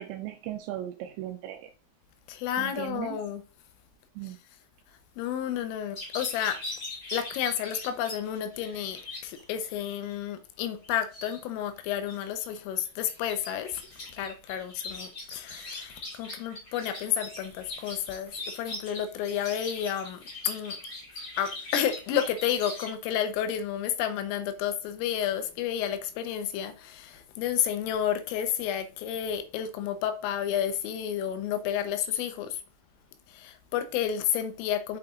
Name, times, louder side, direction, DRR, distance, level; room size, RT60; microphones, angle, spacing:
voice 1, 0.0-1.7 2.6-3.2 4.2-4.4, right 13 dB, 80° right, 2.6 m, -37 dB
voice 2, 2.3-3.4 4.2-4.3 5.2-6.6 7.1-13.8 14.1-20.8 21.4-32.6 33.3-35.0, left 10 dB, 90° left, 3.6 m, -31 dB
sound 1, 5.9-9.4 9.8-10.1 10.8-11.4 11.8-12.6 12.8-22.9, left 2 dB, 30° left, 1.8 m, -41 dB
7.6 x 5.7 x 3.8 m
omnidirectional pair, 5.7 m